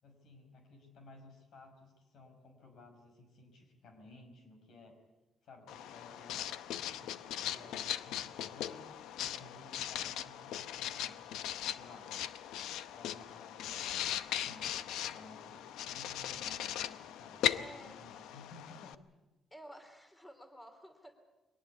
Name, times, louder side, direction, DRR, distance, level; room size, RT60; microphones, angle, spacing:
voice 1, 0.0-5.0 5.4-8.9 9.2-11.2 11.7-12.1 12.9-13.9 14.4-14.7 15.1-18.9, left 2 dB, 70° left, 5 dB, 5.3 m, -56 dB
Writing, 5.7-18.9, left 11 dB, 90° left, 0.8 m, -39 dB
voice 2, 14.8-15.7 17.5-18.0 19.5-21.1, equal, 10° left, 7 dB, 2.9 m, -54 dB
23.0 x 18.5 x 8.3 m, 1.1 s
cardioid pair, 90°, 0 cm